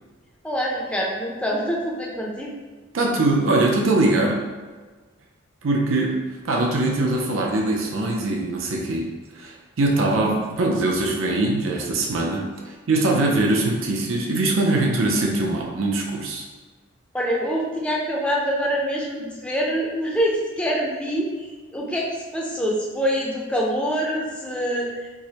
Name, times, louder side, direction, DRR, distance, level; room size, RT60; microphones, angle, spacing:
voice 1, 0.4-2.5 17.1-22.1 22.3-25.1, equal, 5° left, -3 dB, 0.5 m, -25 dB
voice 2, 2.9-4.4 5.6-6.2 6.4-9.1 9.3-12.5 12.9-16.4, right 2 dB, 75° right, -1 dB, 0.5 m, -22 dB
4.6 x 2.1 x 2.8 m, 1.4 s
head